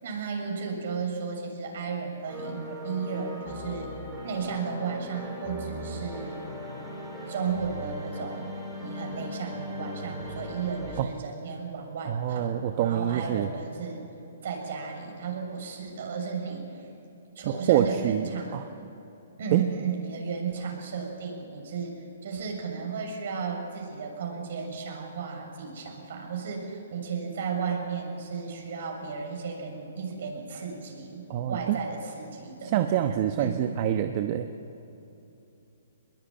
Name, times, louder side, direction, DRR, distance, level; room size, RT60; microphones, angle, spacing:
voice 1, 0.0-3.9 4.2-6.4 7.3-8.5 8.8-14.1 14.4-16.8 17.4-18.9 19.4-33.7, right 5 dB, 60° right, 2 dB, 7.0 m, -34 dB
sound 1, 2.3-11.0, equal, ahead, 5.6 m, -38 dB
voice 2, 12.0-13.5 17.5-18.6 19.5-19.6 31.3-31.8 32.7-34.5, right 11 dB, 40° right, 7 dB, 1.0 m, -26 dB
22.5 x 21.5 x 9.2 m, 2.9 s
hypercardioid pair, 150°, 0 cm